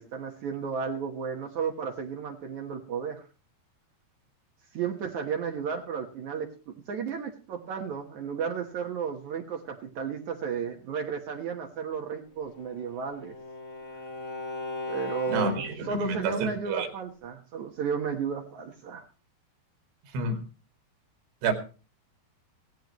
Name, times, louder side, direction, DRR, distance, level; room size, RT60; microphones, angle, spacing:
voice 1, 0.0-3.2 4.7-13.3 14.9-19.0, right 6 dB, 65° right, 1.9 m, -33 dB
Bowed string instrument, 12.4-16.0, left 2 dB, 35° left, 1.3 m, -38 dB
voice 2, 15.3-16.9 20.1-20.4 21.4-21.5, right 3 dB, 90° right, 4.6 m, -29 dB
17.0 x 16.0 x 3.1 m
omnidirectional pair, 5.1 m